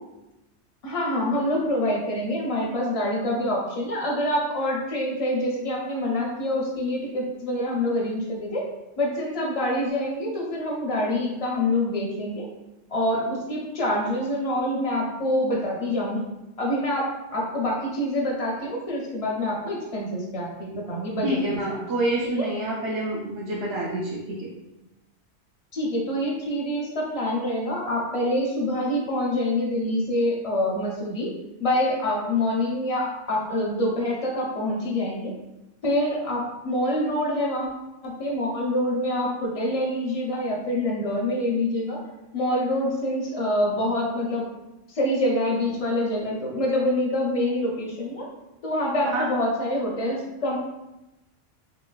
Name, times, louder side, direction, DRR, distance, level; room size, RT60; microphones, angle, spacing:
voice 1, 0.8-8.7 9.0-12.5 12.9-16.3 16.6-21.8 22.4-22.5 25.7-31.3 31.6-35.3 35.8-37.7 38.0-42.0 42.3-44.5 44.9-48.3 48.6-50.6, left 1 dB, 45° left, -2 dB, 0.5 m, -26 dB
voice 2, 21.2-24.5 49.1-49.3 50.1-50.2, right 1 dB, 75° right, -5 dB, 0.9 m, -27 dB
3.0 x 2.9 x 2.3 m, 0.98 s
omnidirectional pair, 1.2 m